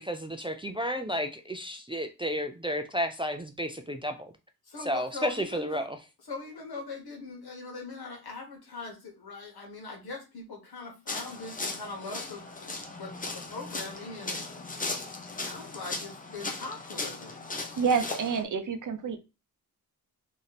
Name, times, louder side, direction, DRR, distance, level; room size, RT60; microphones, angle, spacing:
voice 1, 0.0-4.3 4.8-6.0, equal, 15° right, 0.3 m, -32 dB
voice 2, 4.7-5.9 6.3-14.4 15.4-17.5, left 3 dB, 80° left, 1.4 m, -41 dB
sound 1, 11.1-18.4, left 3 dB, 20° left, 0.6 m, -37 dB
voice 3, 17.6-19.2, right 6 dB, 55° right, 0.6 m, -28 dB
3.1 x 2.7 x 4.0 m
wide cardioid pair, 130°, 37 cm